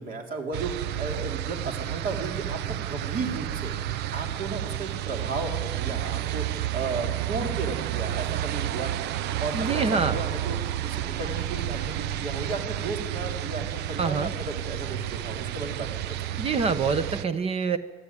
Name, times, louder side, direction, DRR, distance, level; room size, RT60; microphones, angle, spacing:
voice 1, 0.0-6.4 6.7-9.0 9.4-10.6 10.8-15.9 16.4-16.5, right 3 dB, 55° right, 3 dB, 3.8 m, -34 dB
sound 1, 0.5-17.2, right 12 dB, 85° right, 0.7 m, -31 dB
voice 2, 9.5-10.2 14.0-14.3 16.4-17.8, right 5 dB, 35° right, 12 dB, 0.9 m, -26 dB
20.5 x 13.5 x 9.8 m, 1.5 s
cardioid pair, 110°, 17 cm